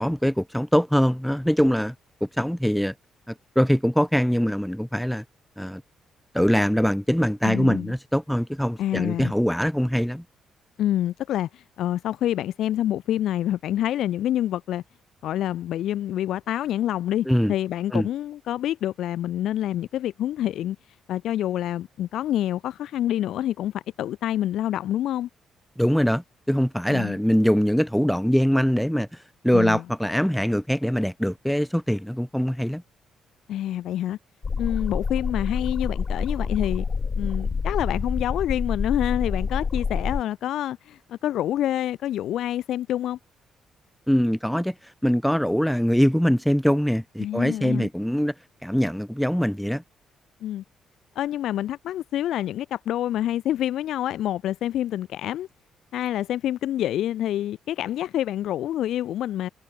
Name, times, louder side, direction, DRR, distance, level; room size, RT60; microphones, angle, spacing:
voice 1, 0.0-1.9 2.2-2.9 3.3-5.2 5.6-5.8 6.3-10.2 17.2-17.5 17.9-18.1 25.8-32.8 44.1-48.3 48.6-49.8, equal, ahead, 1.6 m, -23 dB
voice 2, 7.4-7.9 8.8-9.3 10.8-14.8 15.2-20.8 21.1-25.3 26.9-27.2 29.5-29.8 33.5-34.2 34.6-36.8 37.2-43.2 47.2-47.9 50.4-50.6 51.1-55.5 55.9-59.5, left 12 dB, 75° left, 4.4 m, -27 dB
sound 1, 34.4-40.2, left 5 dB, 35° left, 1.1 m, -27 dB
cardioid pair, 90°, 0 cm